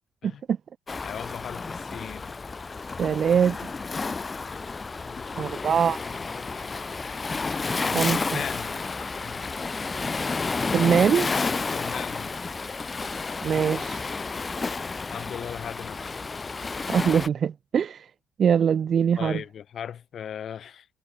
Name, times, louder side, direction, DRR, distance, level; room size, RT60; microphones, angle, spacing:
Waves surf, 0.9-17.3, left 4 dB, 30° left, 2.3 m, -31 dB
voice 1, 1.0-2.4 5.0-6.7 8.3-8.8 9.1-9.5 11.7-12.3 15.1-16.2 19.2-20.9, left 8 dB, 60° left, 2.6 m, -38 dB
voice 2, 3.0-3.6 5.4-6.0 7.9-8.2 10.7-11.3 13.4-14.1 16.9-18.1 18.4-19.4, right 7 dB, 55° right, 0.5 m, -22 dB
cardioid pair, 90°, 0 cm